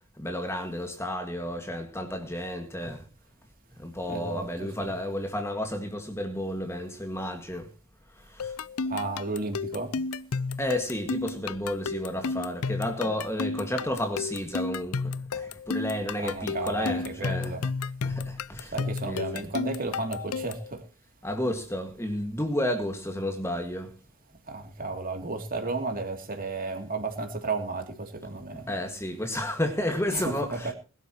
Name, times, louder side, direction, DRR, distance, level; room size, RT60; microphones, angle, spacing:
voice 1, 0.2-3.0 3.8-7.7 8.3-8.5 10.6-19.5 21.2-24.0 28.7-30.7, left 1 dB, 10° left, 1.8 m, -32 dB
voice 2, 4.1-4.5 4.8-4.9 8.9-9.9 16.2-17.6 18.7-20.8 24.5-28.7 30.1-30.7, right 3 dB, 40° right, 2.9 m, -33 dB
sound 1, 8.4-20.7, left 4 dB, 80° left, 0.6 m, -32 dB
21.0 x 12.5 x 3.0 m
head